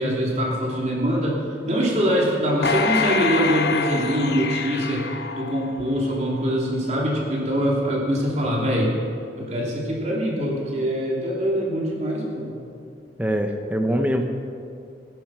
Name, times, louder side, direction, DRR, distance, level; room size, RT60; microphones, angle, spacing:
voice 1, 0.0-1.4 1.7-5.1 5.3-8.9 9.4-12.5, equal, 40° right, -3 dB, 2.9 m, -23 dB
sound 1, 2.6-6.1 6.6-6.7, left 5 dB, 70° left, 0.9 m, -26 dB
voice 2, 13.2-14.2, equal, 10° right, 5 dB, 0.9 m, -23 dB
19.0 x 10.5 x 6.1 m, 2.5 s
head